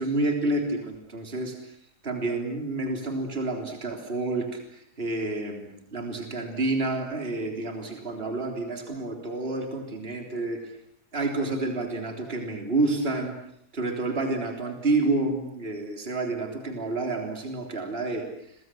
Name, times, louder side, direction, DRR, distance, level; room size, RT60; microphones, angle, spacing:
voice 1, 0.0-1.8 2.0-10.6 11.1-13.4 13.7-18.6, right 2 dB, 35° right, 3 dB, 3.8 m, -29 dB
30.0 x 24.5 x 7.7 m, 0.74 s
omnidirectional pair, 1.7 m